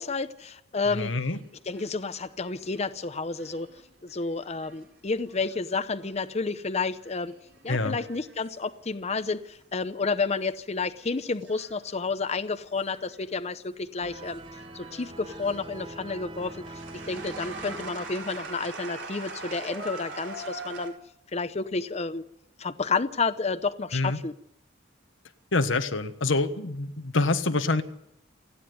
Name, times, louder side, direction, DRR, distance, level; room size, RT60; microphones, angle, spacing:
voice 1, 0.0-1.1 1.7-3.7 4.0-7.3 7.6-14.4 14.7-16.7 17.1-20.9 21.3-22.2 22.6-24.3, left 4 dB, 35° left, 10 dB, 0.8 m, -30 dB
voice 2, 0.9-1.4 7.7-8.0 23.9-24.2 25.5-27.8, left 3 dB, 90° left, 9 dB, 1.4 m, -26 dB
sound 1, 1.1-6.4 6.8-9.6 9.9-10.4 11.0-13.6 14.0-20.9, right 3 dB, 70° right, 4.6 m, -44 dB
sound 2, 14.0-18.8, right 2 dB, 25° right, 0.8 m, -44 dB
28.5 x 9.9 x 9.5 m, 0.78 s
head